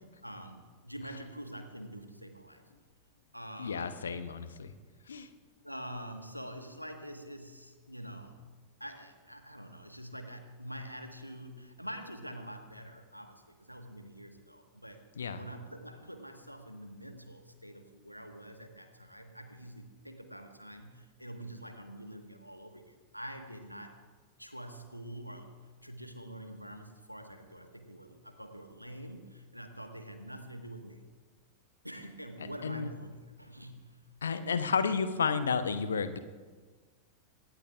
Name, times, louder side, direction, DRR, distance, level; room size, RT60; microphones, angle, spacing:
voice 1, 0.2-2.6 3.3-4.0 5.6-8.4 8.8-15.0 15.3-24.0 24.4-25.5 25.8-31.0 31.8-34.0, equal, 90° right, 6 dB, 1.4 m, -46 dB
voice 2, 3.6-4.7 5.1-5.3 15.2-15.4 32.6-32.9 34.2-36.2, left 5 dB, 70° left, 11 dB, 0.9 m, -31 dB
22.5 x 18.5 x 2.4 m, 1.4 s
figure-of-eight pair, 90°, 0 cm